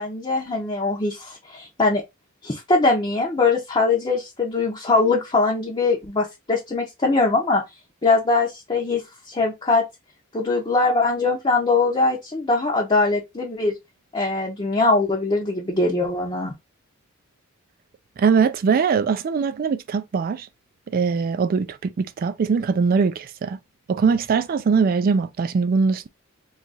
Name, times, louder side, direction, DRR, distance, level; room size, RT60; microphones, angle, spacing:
voice 1, 0.0-2.0 2.4-7.6 8.0-9.0 9.3-9.8 10.3-13.7 14.1-16.5, left 3 dB, 25° left, 0.6 m, -21 dB
voice 2, 18.2-20.5 20.9-23.6 23.9-26.1, right 5 dB, 45° right, 0.3 m, -21 dB
2.9 x 2.4 x 3.9 m
head